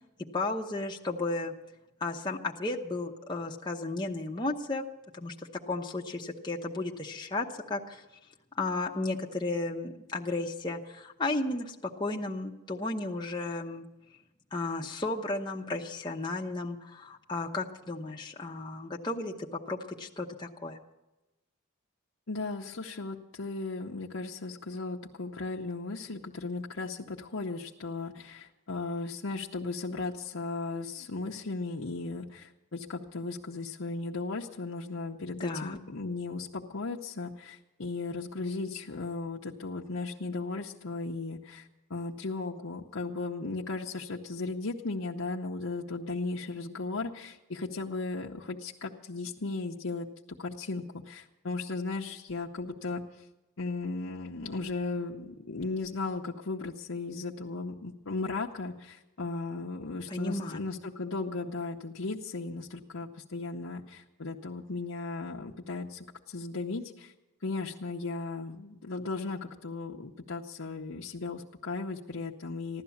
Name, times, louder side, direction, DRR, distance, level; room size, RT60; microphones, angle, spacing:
voice 1, 0.3-1.5 2.0-4.8 5.1-5.3 5.7-8.0 8.5-11.7 12.0-13.9 14.5-19.3 19.7-20.8 35.4-35.8 60.1-60.6, left 2 dB, 20° left, 0 dB, 0.9 m, -34 dB
voice 2, 22.3-50.1 50.4-53.3 53.6-67.1 67.4-72.8, left 3 dB, 70° left, -2 dB, 0.9 m, -36 dB
15.5 x 12.0 x 7.1 m, 1.0 s
head